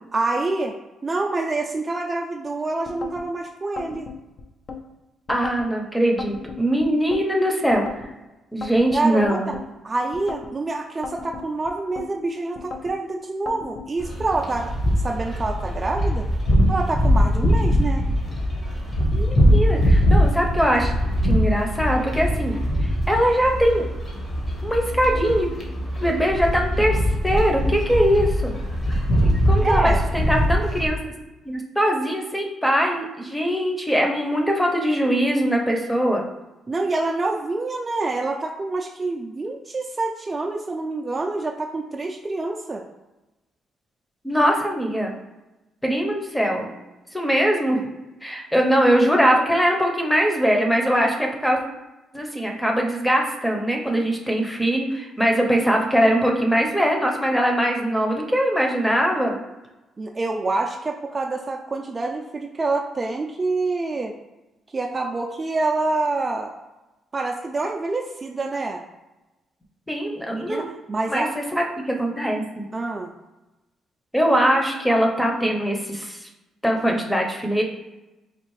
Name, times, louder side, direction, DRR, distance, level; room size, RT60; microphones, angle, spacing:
voice 1, 0.1-0.7 1.0-4.1 8.9-9.6 9.8-14.7 15.0-16.3 16.7-18.0 29.6-30.0 36.7-42.8 60.0-64.1 64.7-66.6 67.1-68.8 70.3-71.3 72.7-73.1, right 3 dB, 30° right, 1 dB, 0.3 m, -26 dB
sound 1, 2.8-3.3 3.8-4.8 5.3-5.7 6.2-7.2 7.7-8.1 8.6-9.7 10.1-10.5 11.0-12.1 12.5-13.0 13.5-13.9, left 4 dB, 55° left, 0.5 m, -36 dB
voice 2, 5.3-7.8 8.5-9.5 19.1-20.9 21.2-22.6 22.8-23.9 24.6-25.5 26.0-28.5 29.2-31.1 31.4-36.2 44.2-45.1 45.8-46.8 47.1-47.8 48.2-51.6 52.1-59.4 69.9-70.7 71.1-72.6 74.1-76.3 76.6-77.6, equal, 5° left, 1 dB, 0.7 m, -21 dB
sound 2, 14.0-30.9, equal, 40° left, 1.1 m, -22 dB
4.4 x 2.4 x 3.1 m, 1.0 s
cardioid pair, 90°, 0 cm